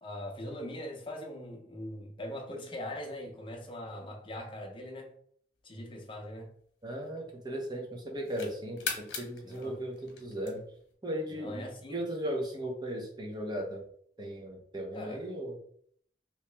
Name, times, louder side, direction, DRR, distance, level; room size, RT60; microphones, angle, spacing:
voice 1, 0.0-5.1 5.6-6.5 9.4-9.8 11.3-12.0 14.9-15.2, left 1 dB, 30° left, 2 dB, 0.7 m, -41 dB
sound 1, 6.0-7.5 8.0-10.9, left 5 dB, 70° left, 1.1 m, -41 dB
voice 2, 6.8-10.6 11.0-11.6 11.9-13.8 14.2-15.6, equal, 25° right, 1 dB, 0.7 m, -37 dB
3.1 x 2.9 x 3.3 m, 0.62 s
head